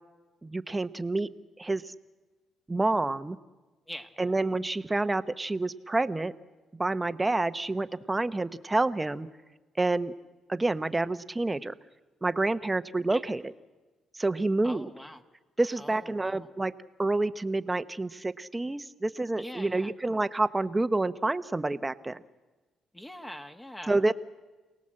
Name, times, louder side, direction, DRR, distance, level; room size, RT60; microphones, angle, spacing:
voice 1, 0.4-1.3 1.6-1.9 2.7-3.4 4.2-6.3 6.8-9.3 9.8-10.1 10.5-11.7 12.2-13.5 14.2-14.9 15.6-16.7 17.0-22.2 23.9-24.1, right 2 dB, 15° right, 13 dB, 0.9 m, -28 dB
voice 2, 14.6-15.2 15.8-16.5 19.4-19.9 22.9-24.0, equal, 10° left, 6 dB, 1.5 m, -43 dB
28.0 x 19.0 x 7.6 m, 1.2 s
cardioid pair, 90°, 0 cm